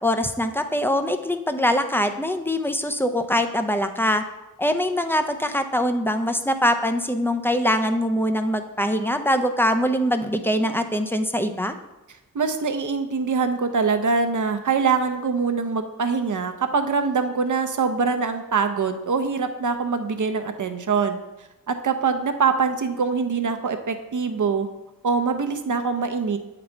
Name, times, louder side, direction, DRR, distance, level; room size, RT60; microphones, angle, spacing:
voice 1, 0.0-4.2 4.6-11.7, equal, 5° left, 7 dB, 0.6 m, -23 dB
voice 2, 12.3-24.7 25.0-26.4, right 5 dB, 60° right, 7 dB, 0.8 m, -24 dB
8.4 x 4.0 x 4.5 m, 0.97 s
cardioid pair, 55°, 35 cm